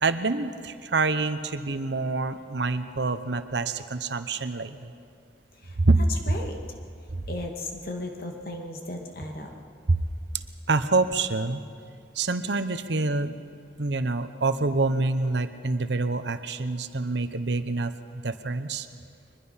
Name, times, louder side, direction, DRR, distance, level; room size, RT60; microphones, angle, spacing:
voice 1, 0.0-4.9 5.8-6.0 7.1-7.2 9.9-10.0 10.7-11.6 12.1-13.4 13.8-18.9, right 3 dB, 75° right, 11 dB, 0.9 m, -26 dB
voice 2, 6.1-6.6 7.3-9.5, left 2 dB, 55° left, 3 dB, 2.1 m, -36 dB
23.0 x 21.0 x 5.8 m, 2.3 s
head